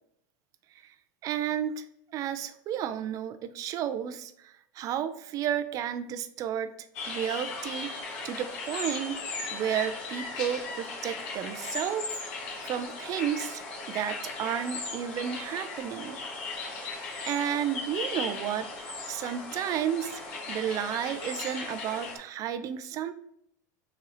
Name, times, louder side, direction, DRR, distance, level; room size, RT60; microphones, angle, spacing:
voice 1, 1.2-1.8 2.1-6.7 7.1-7.9 8.2-9.2 9.5-12.2 12.6-13.6 13.9-16.2 16.9-17.0 17.3-20.2 20.5-23.1, right 9 dB, 35° right, 10 dB, 0.4 m, -32 dB
sound 1, 6.9-22.2, left 3 dB, 55° left, 1.3 m, -37 dB
3.9 x 2.7 x 4.8 m, 0.75 s
supercardioid pair, 130°, 10 cm